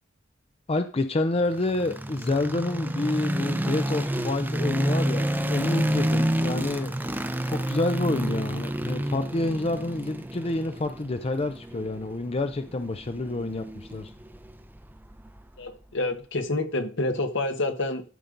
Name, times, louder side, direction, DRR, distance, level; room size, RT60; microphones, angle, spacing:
voice 1, 0.7-6.9 7.4-14.1, left 2 dB, 30° left, 0.5 m, -28 dB
sound 1, 1.5-15.6, right 1 dB, 10° right, 0.7 m, -29 dB
voice 2, 15.6-18.0, left 2 dB, 65° left, 1.4 m, -28 dB
14.0 x 5.3 x 3.9 m
head